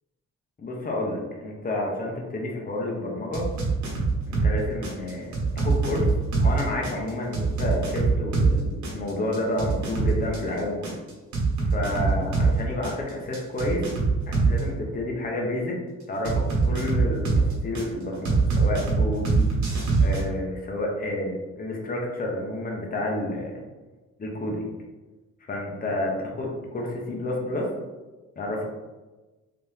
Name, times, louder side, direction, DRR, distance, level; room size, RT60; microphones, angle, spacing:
voice 1, 0.6-3.5 4.3-6.1 6.4-11.0 11.7-13.9 14.3-15.8 16.1-19.5 20.0-23.5 24.2-24.6 25.5-27.7 28.4-28.7, left 1 dB, 30° left, -1 dB, 0.9 m, -30 dB
sound 1, 3.3-4.5 4.8-8.5 8.8-12.5 12.8-14.6 16.2-17.8 18.2-20.2, right 4 dB, 70° right, 1.2 m, -23 dB
3.4 x 2.9 x 3.3 m, 1.2 s
cardioid pair, 90°, 30 cm